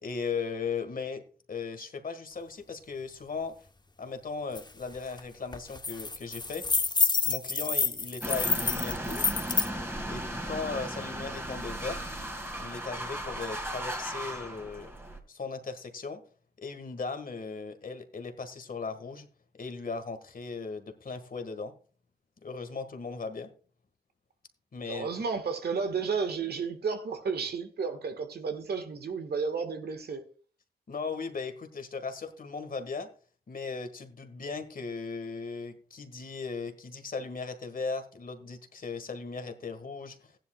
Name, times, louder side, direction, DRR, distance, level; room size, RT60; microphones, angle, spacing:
voice 1, 0.0-1.2 1.5-3.5 4.0-6.7 7.3-9.4 10.1-12.0 12.6-14.9 15.3-16.2 16.6-19.3 19.6-21.7 22.4-23.5 24.7-25.1 30.9-33.1 33.5-40.4, left 4 dB, 55° left, 1.7 m, -37 dB
sound 1, 4.5-4.6 5.0-5.2 5.5-9.7, left 4 dB, 25° left, 0.9 m, -28 dB
sound 2, 8.2-15.2, right 1 dB, 15° right, 2.3 m, -36 dB
voice 2, 24.9-30.2, right 5 dB, 70° right, 1.5 m, -32 dB
15.0 x 10.5 x 2.3 m
supercardioid pair, 40°, 17 cm